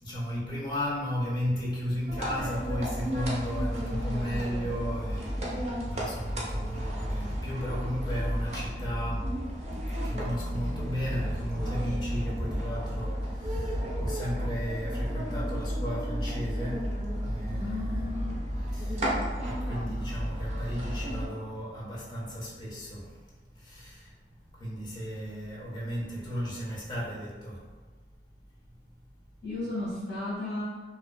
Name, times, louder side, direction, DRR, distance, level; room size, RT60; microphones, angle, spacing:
voice 1, 0.0-9.4 9.9-19.1 19.4-27.7, equal, 25° left, -5 dB, 0.6 m, -35 dB
sound 1, 2.1-21.3, equal, 40° right, 0.5 m, -32 dB
voice 2, 17.5-18.5 29.4-30.8, left 2 dB, 85° left, -11 dB, 0.9 m, -35 dB
2.4 x 2.2 x 2.2 m, 1.3 s
head